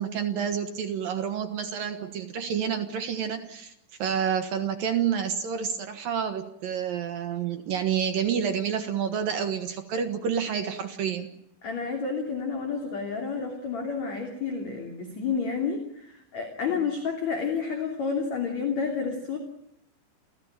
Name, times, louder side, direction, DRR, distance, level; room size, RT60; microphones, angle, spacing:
voice 1, 0.0-3.7 4.0-11.3, right 7 dB, 60° right, 7 dB, 2.8 m, -29 dB
voice 2, 11.6-19.4, left 5 dB, 40° left, 3 dB, 3.7 m, -30 dB
29.5 x 16.5 x 8.8 m, 0.83 s
omnidirectional pair, 5.4 m